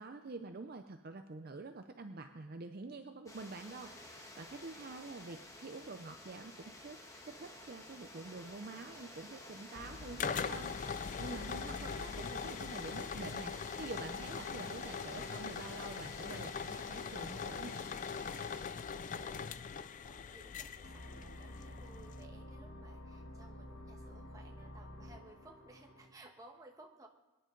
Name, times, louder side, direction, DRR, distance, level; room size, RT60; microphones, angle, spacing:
voice 1, 0.0-7.0 7.2-17.8, right 3 dB, 45° right, 7 dB, 0.5 m, -47 dB
sound 1, 3.3-18.7, left 1 dB, 15° left, 1.3 m, -52 dB
voice 2, 4.7-5.4 18.6-27.1, right 2 dB, 15° right, 2 dB, 1.2 m, -59 dB
sound 2, 9.7-22.2, left 6 dB, 35° left, 0.4 m, -41 dB
sound 3, 20.8-26.1, left 1 dB, 70° left, 1.6 m, -50 dB
23.0 x 10.0 x 3.8 m, 1.1 s
head